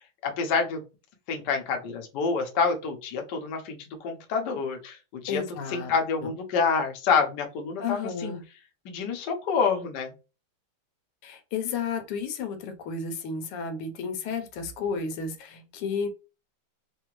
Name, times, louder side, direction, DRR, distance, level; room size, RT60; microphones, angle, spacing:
voice 1, 0.2-0.8 1.3-5.4 5.7-8.3 8.8-10.1, left 5 dB, 60° left, 1.3 m, -27 dB
voice 2, 5.3-6.3 7.8-8.4 11.2-16.1, left 5 dB, 85° left, 1.7 m, -32 dB
4.8 x 2.6 x 3.0 m
omnidirectional pair, 2.4 m